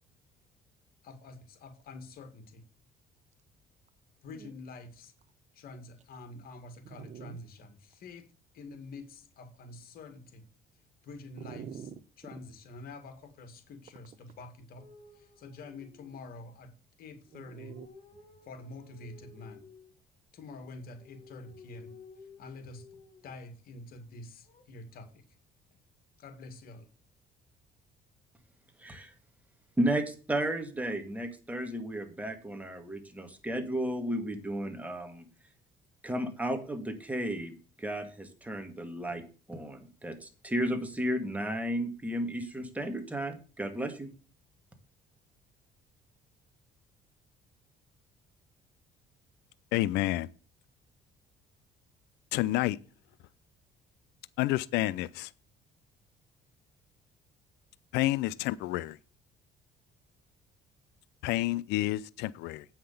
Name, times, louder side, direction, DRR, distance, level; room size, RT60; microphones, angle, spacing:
voice 1, 1.0-2.6 4.2-5.1 5.6-8.3 8.5-10.4 11.0-11.9 12.2-16.7 17.0-17.8 18.5-19.6 20.3-21.9 22.4-22.9 23.2-25.2 26.2-26.9, left 3 dB, 60° left, 2.2 m, -47 dB
Dog, 3.9-4.0 4.3-4.5 5.2-5.3 6.0-6.1 6.8-7.4 7.9-8.0 11.4-12.4 13.9-14.4 17.3-17.9, right 8 dB, 45° right, 0.7 m, -45 dB
sound 1, 14.8-16.5 17.3-19.9 20.8-23.4 24.5-25.0, left 4 dB, 40° left, 3.8 m, -55 dB
voice 2, 28.8-29.1 29.8-35.3 36.0-37.5 37.8-39.2 39.5-44.1, right 1 dB, 10° right, 2.0 m, -33 dB
voice 3, 49.7-50.3 52.3-52.8 54.4-55.3 57.9-59.0 61.2-62.7, left 17 dB, 90° left, 0.5 m, -29 dB
8.6 x 5.9 x 6.8 m
cardioid pair, 110°, 17 cm